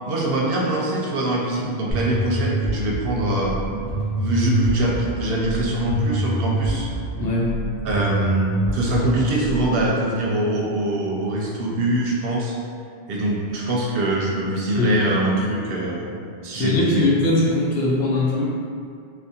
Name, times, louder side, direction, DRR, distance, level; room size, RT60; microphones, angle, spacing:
voice 1, 0.0-3.6 4.2-6.9 7.8-12.6 13.1-16.2 16.4-17.1, right 1 dB, 65° right, -3 dB, 0.7 m, -23 dB
sound 1, 1.9-9.9, right 2 dB, 20° left, 0.9 m, -27 dB
voice 2, 7.2-7.5 14.8-15.0 16.5-18.5, left 2 dB, 70° left, -4 dB, 0.8 m, -20 dB
3.5 x 2.2 x 2.7 m, 2.3 s
omnidirectional pair, 1.1 m